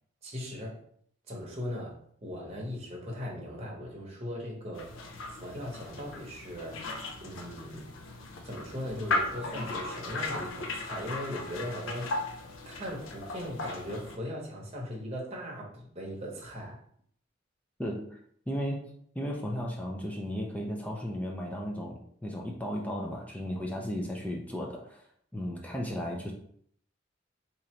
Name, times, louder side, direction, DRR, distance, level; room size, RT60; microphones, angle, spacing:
voice 1, 0.2-0.8 1.3-4.9 5.3-6.8 7.2-7.9 8.4-12.3 12.7-16.8, left 1 dB, 30° right, -2 dB, 0.9 m, -39 dB
sound 1, 4.7-14.2, left 2 dB, 75° left, 0.5 m, -37 dB
voice 2, 17.8-18.2 18.5-18.9 19.2-25.1 25.3-26.3, equal, 5° left, 0 dB, 0.4 m, -35 dB
2.9 x 2.5 x 4.3 m, 0.64 s
head